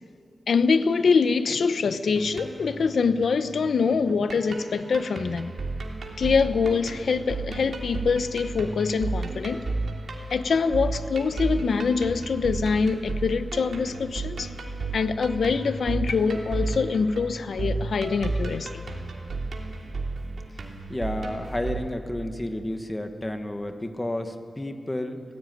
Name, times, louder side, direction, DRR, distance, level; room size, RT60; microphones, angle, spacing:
voice 1, 0.5-5.5 6.2-9.6 10.3-14.5 14.9-18.8, left 5 dB, 90° left, 11 dB, 0.9 m, -24 dB
sound 1, 2.2-21.8, right 3 dB, 65° right, 3.0 m, -33 dB
voice 2, 20.5-25.2, left 1 dB, 15° left, 6 dB, 1.4 m, -31 dB
26.0 x 18.0 x 9.4 m, 2.5 s
wide cardioid pair, 165°, 0 cm